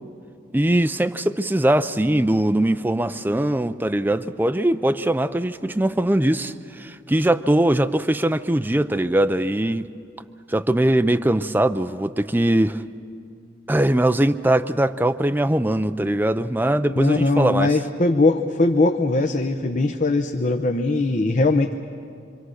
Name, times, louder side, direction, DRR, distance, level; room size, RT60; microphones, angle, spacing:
voice 1, 0.5-9.8 10.5-12.8 13.7-17.7, right 1 dB, 10° right, 10 dB, 0.5 m, -21 dB
voice 2, 17.0-21.7, left 2 dB, 40° left, 5 dB, 0.8 m, -20 dB
26.0 x 25.5 x 6.4 m, 2.5 s
head